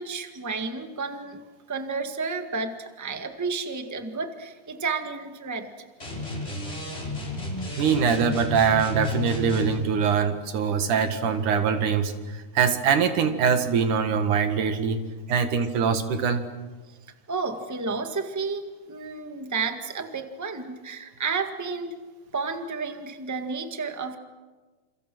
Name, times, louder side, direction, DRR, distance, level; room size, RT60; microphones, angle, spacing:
voice 1, 0.0-5.7 15.3-15.4 17.3-22.0 22.3-24.2, right 4 dB, 10° right, 6 dB, 1.2 m, -31 dB
sound 1, 6.0-9.8, left 2 dB, 20° left, 5.7 m, -32 dB
voice 2, 7.8-15.0 15.3-16.4, right 6 dB, 90° right, 8 dB, 3.4 m, -23 dB
30.0 x 28.5 x 6.3 m, 1.3 s
omnidirectional pair, 3.4 m